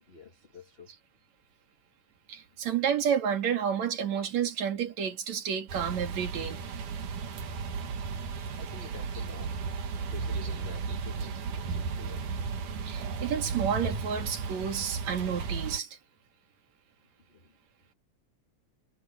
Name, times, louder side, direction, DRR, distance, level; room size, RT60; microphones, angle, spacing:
voice 1, 0.1-0.9 8.6-9.6 10.0-12.3 17.3-17.5, left 3 dB, 25° left, 1.5 m, -49 dB
voice 2, 2.3-6.6 10.4-10.5 12.8-15.9, right 8 dB, 65° right, 3.4 m, -30 dB
sound 1, 5.7-15.8, right 5 dB, 90° right, 3.5 m, -35 dB
omnidirectional pair, 3.5 m